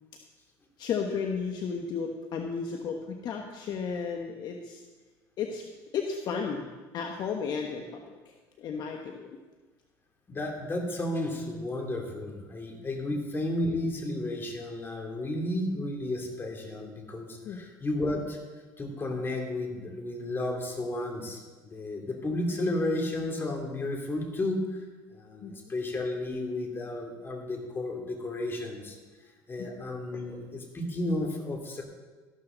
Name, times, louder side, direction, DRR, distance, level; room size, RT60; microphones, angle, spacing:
voice 1, 0.8-4.8 5.4-5.6 5.9-6.7 6.9-8.2 8.6-9.3 17.4-17.6 25.4-25.5 29.6-29.7, left 6 dB, 55° left, 2 dB, 1.3 m, -33 dB
voice 2, 10.3-18.4 18.8-24.6 25.1-29.0 29.5-31.8, left 1 dB, 25° left, 1 dB, 3.1 m, -32 dB
13.5 x 12.5 x 4.0 m, 1.3 s
supercardioid pair, 100°, 9 cm